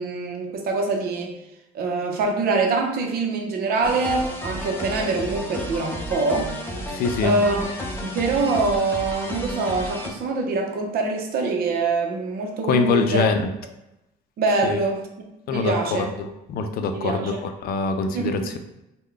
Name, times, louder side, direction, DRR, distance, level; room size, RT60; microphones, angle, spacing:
voice 1, 0.0-1.3 1.7-6.6 7.2-7.7 8.0-13.3 14.4-15.1 15.5-16.1 16.9-17.4 18.1-18.4, right 3 dB, 65° right, 2 dB, 0.7 m, -24 dB
High energy loop, 3.8-10.1, left 1 dB, 10° left, 0.6 m, -32 dB
voice 2, 6.9-7.3 12.7-13.4 14.7-14.8 15.5-17.3 17.6-18.6, left 4 dB, 65° left, 7 dB, 0.5 m, -23 dB
3.6 x 2.2 x 3.3 m, 0.91 s
cardioid pair, 110°, 17 cm